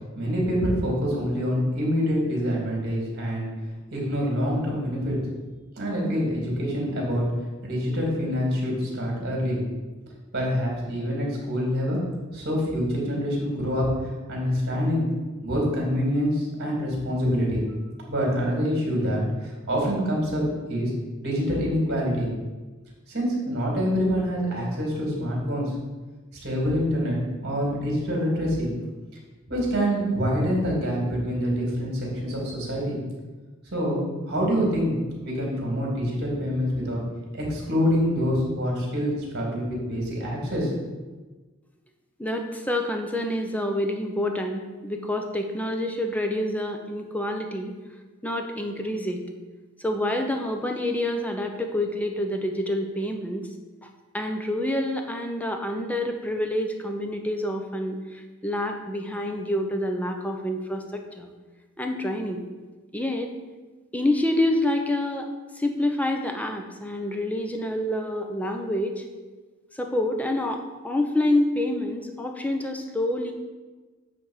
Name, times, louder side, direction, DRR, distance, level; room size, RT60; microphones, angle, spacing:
voice 1, 0.2-3.5 3.9-5.2 5.8-7.2 7.6-9.6 10.3-12.0 12.3-13.9 14.3-15.0 15.4-17.6 18.1-20.9 21.2-22.3 23.1-25.7 26.4-28.7 29.5-33.0 33.7-34.9 35.2-37.0 37.3-40.7, equal, 50° right, -2 dB, 2.7 m, -26 dB
voice 2, 42.2-47.7 48.2-49.2 49.8-53.4 54.1-61.3 61.8-62.4 62.9-63.3 63.9-65.3 65.5-69.0 69.7-73.3, left 1 dB, 5° left, 4 dB, 0.7 m, -27 dB
8.7 x 3.5 x 6.5 m, 1.3 s
head